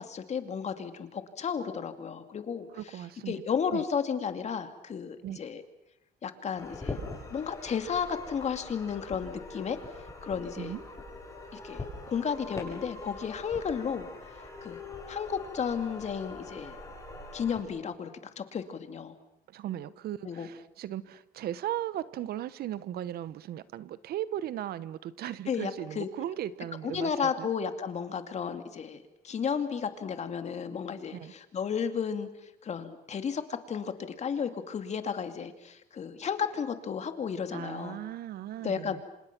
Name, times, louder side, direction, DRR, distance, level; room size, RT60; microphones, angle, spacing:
voice 1, 0.0-2.7 3.3-5.6 6.2-7.0 7.3-9.8 10.2-10.7 11.5-14.1 14.6-14.8 15.1-16.8 17.3-18.1 18.4-19.1 20.2-20.5 25.5-26.1 26.8-38.0 38.6-39.0, left 7 dB, 40° left, 8 dB, 2.4 m, -33 dB
voice 2, 2.7-3.4 3.7-3.8 5.2-5.4 10.6-10.8 19.5-27.1 27.4-27.5 31.1-31.3 37.5-39.0, right 12 dB, 65° right, 16 dB, 1.1 m, -37 dB
sound 1, 6.6-17.6, left 3 dB, 20° left, 7.4 m, -43 dB
27.5 x 27.0 x 6.1 m, 0.86 s
cardioid pair, 110°, 17 cm